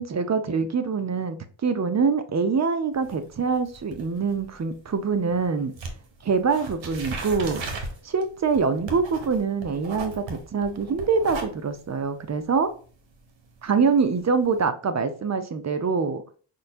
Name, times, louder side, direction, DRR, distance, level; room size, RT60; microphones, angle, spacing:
voice 1, 0.0-1.4 1.6-5.7 6.2-7.6 8.0-12.7 13.6-16.2, right 5 dB, 35° right, 9 dB, 0.6 m, -24 dB
sound 1, 2.9-5.5 5.7-14.6, right 3 dB, 75° right, 0.9 m, -38 dB
5.2 x 2.2 x 2.5 m, 0.41 s
cardioid pair, 55°, 46 cm